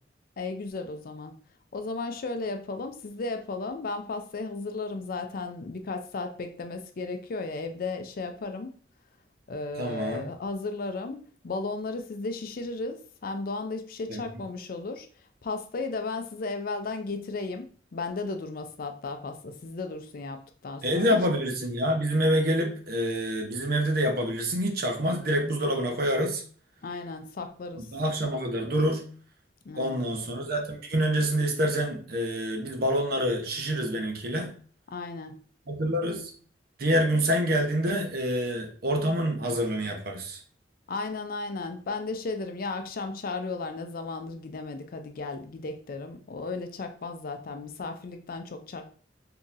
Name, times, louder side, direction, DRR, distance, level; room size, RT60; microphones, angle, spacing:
voice 1, 0.4-1.3 1.7-8.7 9.5-15.1 15.4-21.2 26.8-27.9 29.7-30.1 34.9-35.3 40.9-48.9, left 3 dB, 55° left, 0.4 m, -35 dB
voice 2, 9.8-10.2 14.1-14.2 20.8-26.4 27.8-29.1 29.7-34.5 35.7-36.3 36.8-40.4, equal, 60° right, 0.8 m, -27 dB
3.9 x 2.8 x 2.5 m
head